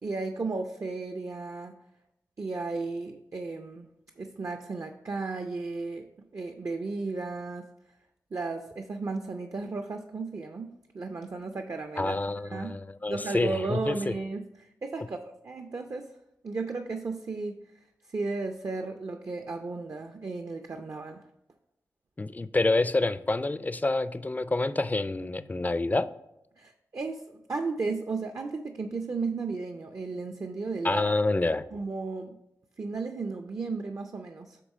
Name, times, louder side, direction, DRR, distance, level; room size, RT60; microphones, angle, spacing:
voice 1, 0.0-1.7 2.4-3.9 4.2-6.1 6.3-7.7 8.3-12.2 12.4-12.7 13.1-16.1 16.4-17.6 18.1-21.2 26.6-31.0 31.7-32.4 32.8-34.6, right 3 dB, 50° right, 5 dB, 0.5 m, -34 dB
voice 2, 12.0-14.1 22.2-26.1 30.8-31.7, left 2 dB, 25° left, 14 dB, 0.4 m, -27 dB
8.3 x 3.1 x 5.4 m, 0.84 s
cardioid pair, 50°, 7 cm